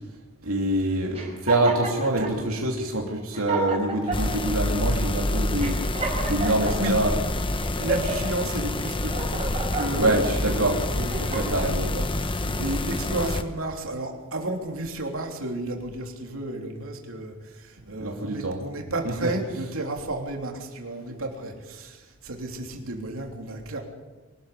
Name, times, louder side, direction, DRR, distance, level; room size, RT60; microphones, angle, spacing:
voice 1, 0.4-5.8 6.2-7.1 9.9-10.8 11.2-11.9 12.4-12.6 18.0-18.6 19.0-19.3, right 1 dB, 90° right, -1 dB, 2.8 m, -25 dB
sound 1, 1.1-2.3 3.0-3.1 3.3-4.4 5.0-5.1 5.6-7.1 7.6-8.3 8.8-10.1 10.7-11.7, right 3 dB, 30° right, 5.4 m, -31 dB
sound 2, 4.1-13.4, left 1 dB, 25° left, 1.0 m, -27 dB
voice 2, 6.5-7.0 7.8-23.8, right 1 dB, 75° right, 2 dB, 3.3 m, -33 dB
23.5 x 13.0 x 8.4 m, 1.2 s
head